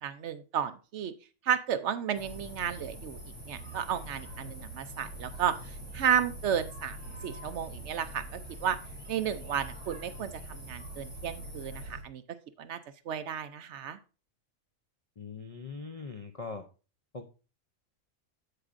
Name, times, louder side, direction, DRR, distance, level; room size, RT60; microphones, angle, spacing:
voice 1, 0.0-1.1 1.4-3.2 3.5-7.0 7.2-8.8 9.1-12.2 12.6-12.8 13.1-14.0, right 8 dB, 65° right, 11 dB, 0.8 m, -32 dB
sound 1, 2.1-12.0, right 1 dB, 5° right, 3.2 m, -44 dB
voice 2, 15.2-16.7 17.1-17.3, left 4 dB, 50° left, 5 dB, 0.4 m, -41 dB
14.5 x 4.9 x 2.5 m, 0.34 s
omnidirectional pair, 1.4 m